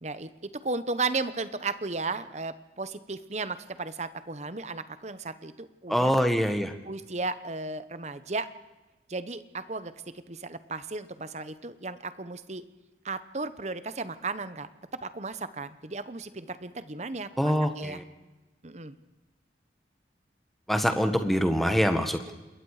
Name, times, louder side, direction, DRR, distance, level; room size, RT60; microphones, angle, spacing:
voice 1, 0.0-6.1 6.9-8.5 9.1-9.9 10.3-12.6 13.0-14.7 15.0-18.0 18.6-19.0, right 3 dB, 40° right, 13 dB, 1.0 m, -35 dB
voice 2, 5.9-6.7 17.4-18.0 20.7-22.3, equal, ahead, 6 dB, 1.6 m, -24 dB
28.0 x 21.5 x 5.0 m, 1.1 s
head